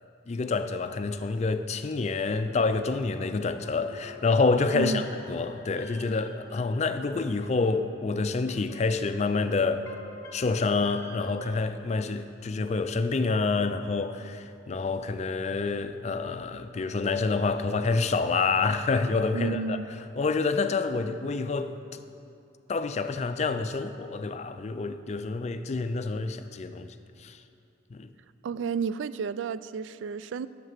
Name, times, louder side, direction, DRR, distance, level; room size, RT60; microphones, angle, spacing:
voice 1, 0.3-9.8 10.3-19.8 20.2-21.7 22.7-27.4 27.9-28.1, left 4 dB, 35° left, 0.4 m, -28 dB
sound 1, 2.0-11.5, left 2 dB, 20° left, 1.1 m, -49 dB
voice 2, 19.3-19.9 28.4-30.5, right 5 dB, 80° right, 0.3 m, -31 dB
8.0 x 6.7 x 7.3 m
head